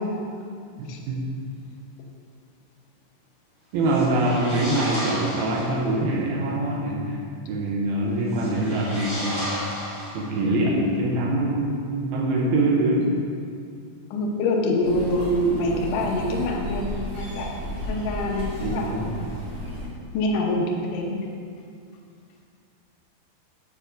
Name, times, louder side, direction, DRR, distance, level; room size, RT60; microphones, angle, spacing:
voice 1, 0.8-1.4 3.7-7.2 7.5-9.5 10.1-13.2 18.6-19.2, right 1 dB, 75° right, -3 dB, 2.7 m, -24 dB
sound 1, 3.8-5.9 8.3-10.6, equal, 15° right, 0.7 m, -33 dB
voice 2, 14.1-17.5 17.9-19.1 20.1-21.2, left 1 dB, 70° left, -1 dB, 2.1 m, -25 dB
sound 2, 14.8-19.8, equal, 30° right, 2.0 m, -33 dB
8.9 x 4.2 x 6.6 m, 2.3 s
omnidirectional pair, 4.8 m